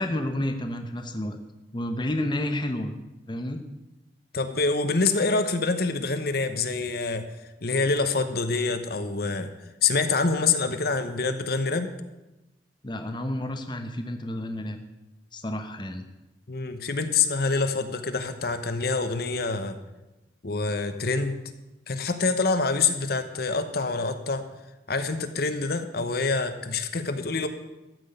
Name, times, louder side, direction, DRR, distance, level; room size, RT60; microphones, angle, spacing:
voice 1, 0.0-1.4 1.7-2.9 3.3-3.6 12.8-14.8 15.3-16.0, left 1 dB, 25° left, 6 dB, 0.9 m, -30 dB
voice 2, 4.3-7.3 7.6-9.5 9.8-11.9 16.5-19.8 20.4-21.4 21.9-24.4 24.9-27.5, left 4 dB, 55° left, 9 dB, 1.0 m, -26 dB
14.0 x 6.2 x 9.1 m, 1.0 s
head